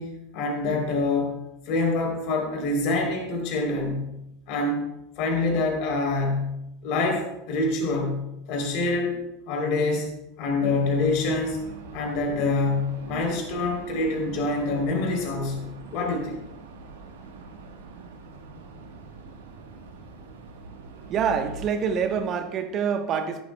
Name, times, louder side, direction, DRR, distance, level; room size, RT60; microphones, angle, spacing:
voice 1, 0.0-1.4 1.6-4.1 4.5-4.9 5.2-6.5 6.8-8.2 8.5-10.1 10.4-15.6 15.9-16.4, left 2 dB, 55° left, 2 dB, 3.2 m, -26 dB
sound 1, 10.7-22.2, right 3 dB, 70° right, 1.2 m, -43 dB
voice 2, 21.1-23.4, right 7 dB, 40° right, 8 dB, 1.0 m, -26 dB
13.5 x 11.5 x 2.2 m, 0.89 s
figure-of-eight pair, 80°, 0 cm